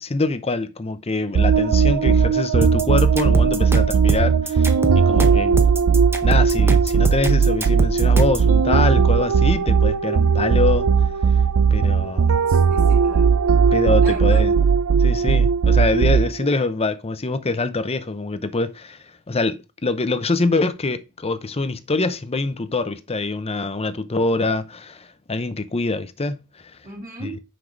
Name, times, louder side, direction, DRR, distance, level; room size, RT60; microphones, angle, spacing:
voice 1, 0.0-5.6 6.2-10.9 11.7-12.4 13.7-14.5 15.0-26.4 27.2-27.3, left 3 dB, 30° left, 0.7 m, -24 dB
sound 1, 1.4-16.5, right 6 dB, 70° right, 0.5 m, -17 dB
sound 2, 2.6-8.5, right 1 dB, 10° right, 0.8 m, -26 dB
voice 2, 12.5-13.4 14.0-14.6 26.8-27.4, right 1 dB, 40° right, 2.1 m, -37 dB
6.0 x 4.8 x 5.0 m
head